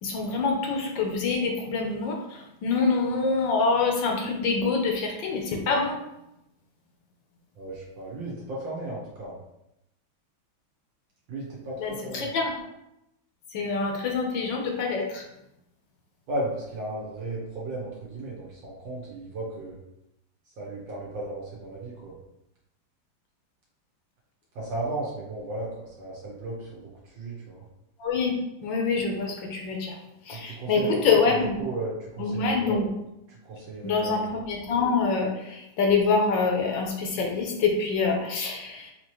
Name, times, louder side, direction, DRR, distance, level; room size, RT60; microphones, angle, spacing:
voice 1, 0.0-6.0 11.8-12.5 13.5-15.3 28.0-28.3 28.6-30.0 30.2-31.5 32.2-32.9 33.8-38.9, left 4 dB, 70° left, 1 dB, 1.3 m, -26 dB
voice 2, 7.6-9.4 11.3-12.3 16.3-19.8 20.6-22.2 24.5-27.7 30.3-31.3 31.6-32.8 33.3-34.3, right 2 dB, 70° right, -5 dB, 1.6 m, -35 dB
5.4 x 2.8 x 3.0 m, 0.87 s
omnidirectional pair, 2.2 m